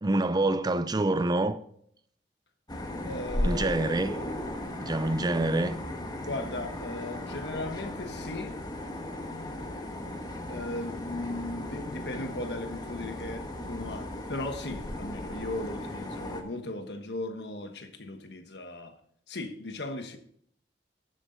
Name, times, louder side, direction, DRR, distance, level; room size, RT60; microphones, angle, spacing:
voice 1, 0.0-1.6 3.4-4.2 4.8-5.8, right 2 dB, 25° right, 0.5 m, -26 dB
sound 1, 2.7-16.4, left 1 dB, 25° left, 1.4 m, -36 dB
voice 2, 3.0-4.0 6.2-8.6 10.5-18.9 19.3-20.2, left 2 dB, 70° left, 1.3 m, -37 dB
12.5 x 8.4 x 3.9 m
head